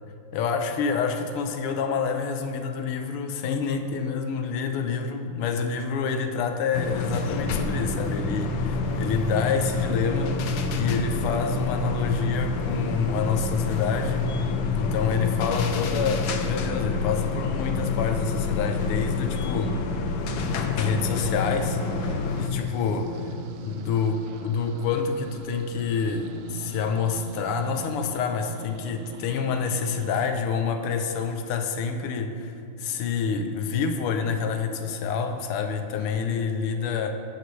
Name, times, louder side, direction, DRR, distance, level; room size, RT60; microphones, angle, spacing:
voice 1, 0.3-10.3 10.7-14.3 14.7-19.8 20.8-23.2 23.6-37.1, left 5 dB, 85° left, 6 dB, 1.7 m, -27 dB
sound 1, 6.7-22.5, left 4 dB, 65° left, 1.0 m, -27 dB
sound 2, 21.1-30.3, right 6 dB, 80° right, 0.8 m, -42 dB
14.5 x 11.0 x 3.2 m, 2.5 s
omnidirectional pair, 2.4 m